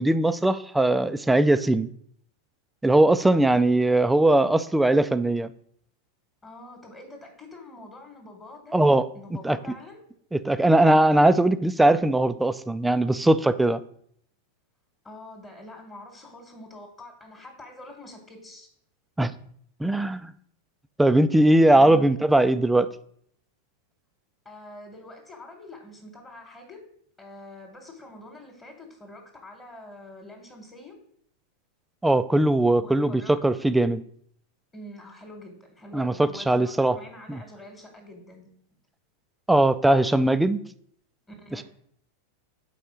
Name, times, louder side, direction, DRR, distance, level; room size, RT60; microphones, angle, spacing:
voice 1, 0.0-1.9 2.8-5.5 8.7-9.1 9.4-9.6 10.3-13.8 19.2-19.3 19.8-20.3 21.0-22.9 32.0-34.0 35.9-37.0 37.3-37.4 39.5-40.6, right 1 dB, 5° right, 12 dB, 0.3 m, -20 dB
voice 2, 6.4-8.8 9.1-10.0 15.0-18.7 24.4-26.8 27.2-31.0 32.8-33.3 34.7-38.5 41.3-41.6, left 1 dB, 15° left, 1 dB, 1.3 m, -45 dB
5.3 x 4.1 x 5.8 m, 0.65 s
figure-of-eight pair, 90°, 0 cm